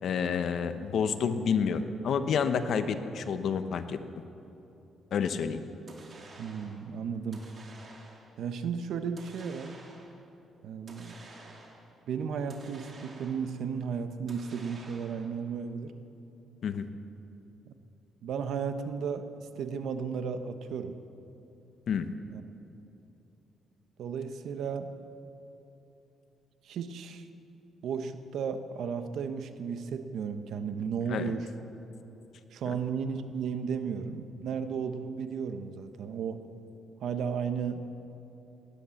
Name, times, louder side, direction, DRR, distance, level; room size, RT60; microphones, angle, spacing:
voice 1, 0.0-4.0 5.1-5.6 16.6-16.9 21.9-22.1 31.1-31.3 32.6-32.8, left 6 dB, 65° left, 10 dB, 1.0 m, -29 dB
sound 1, 5.9-6.8 7.3-8.4 9.2-10.2 10.9-11.9 12.5-13.6 14.3-15.4, right 2 dB, 45° right, 2.7 m, -51 dB
voice 2, 6.4-7.5 8.4-9.8 10.6-11.2 12.1-15.9 17.7-17.8 18.2-21.0 22.3-22.4 24.0-24.9 26.6-27.3 27.8-31.5 32.5-36.4 37.0-37.8, right 6 dB, 75° right, 9 dB, 1.0 m, -34 dB
18.0 x 10.5 x 7.2 m, 2.9 s
cardioid pair, 90°, 0 cm